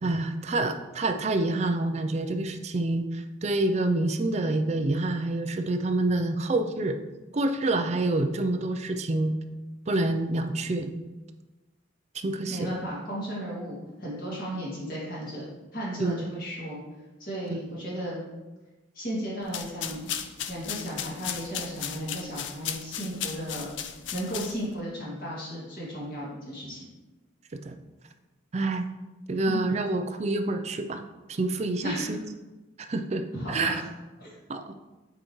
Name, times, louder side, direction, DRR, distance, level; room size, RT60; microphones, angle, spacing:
voice 1, 0.0-7.0 7.3-9.4 9.9-10.9 12.1-12.8 16.0-16.3 17.5-17.8 27.6-27.8 28.5-28.9 29.3-31.0 31.3-32.2 32.8-33.8 34.5-34.7, right 2 dB, 35° right, 7 dB, 0.4 m, -27 dB
voice 2, 12.5-16.8 17.2-18.2 18.9-20.1 20.5-23.8 24.1-26.8 29.5-29.7 31.8-32.2 33.3-33.9 34.2-34.3, equal, 45° left, -7 dB, 2.2 m, -35 dB
sound 1, 19.4-24.8, left 9 dB, 70° left, 0.5 m, -36 dB
8.8 x 4.9 x 3.1 m, 1.1 s
head